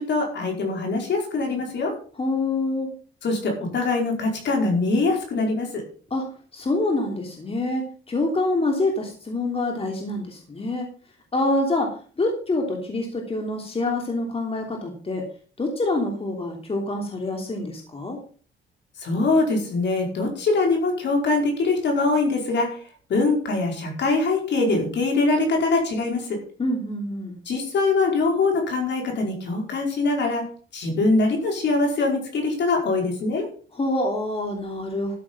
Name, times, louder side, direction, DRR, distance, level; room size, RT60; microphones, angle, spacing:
voice 1, 0.0-1.9 3.2-5.8 19.0-22.8 23.1-26.4 27.4-30.4 30.7-33.5, left 3 dB, 60° left, 1 dB, 5.1 m, -23 dB
voice 2, 2.2-2.9 6.1-6.2 6.5-10.9 11.3-15.3 15.6-18.2 26.6-27.4 33.7-35.2, left 2 dB, 30° left, 2 dB, 3.1 m, -26 dB
13.0 x 7.6 x 5.6 m, 0.42 s
cardioid pair, 90°, 20 cm